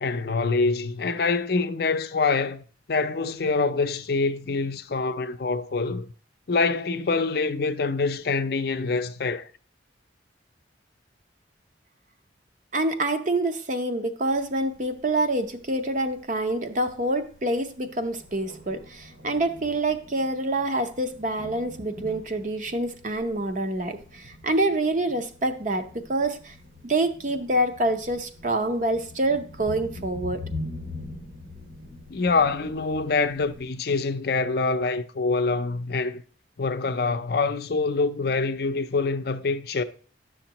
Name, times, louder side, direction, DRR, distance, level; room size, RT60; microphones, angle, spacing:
voice 1, 0.0-6.1 6.5-9.5 32.1-36.2 36.6-39.8, left 4 dB, 55° left, 0.5 m, -25 dB
voice 2, 12.7-26.5 26.8-30.4, right 1 dB, 40° right, 0.7 m, -26 dB
Thunder, 14.3-33.6, left 2 dB, 85° right, 3.7 m, -43 dB
11.0 x 6.5 x 2.9 m
head